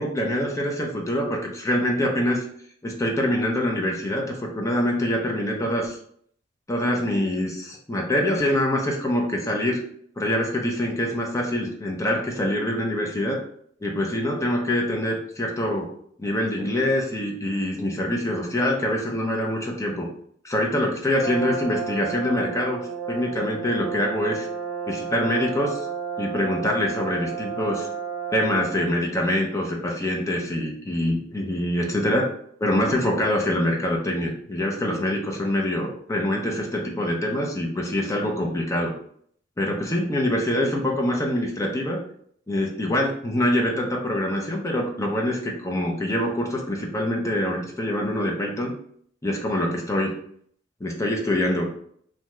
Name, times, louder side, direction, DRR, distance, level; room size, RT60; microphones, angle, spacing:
voice 1, 0.0-2.4 2.8-6.0 6.7-9.8 10.2-13.4 13.8-15.9 16.2-20.1 20.4-22.8 23.1-24.5 24.9-25.8 26.2-27.9 28.3-32.3 32.6-38.9 39.6-42.0 42.5-48.7 49.2-50.1 50.8-51.7, left 1 dB, 15° left, 0 dB, 0.5 m, -25 dB
Brass instrument, 21.2-29.0, right 6 dB, 10° right, 1.1 m, -32 dB
2.7 x 2.3 x 3.0 m, 0.63 s
head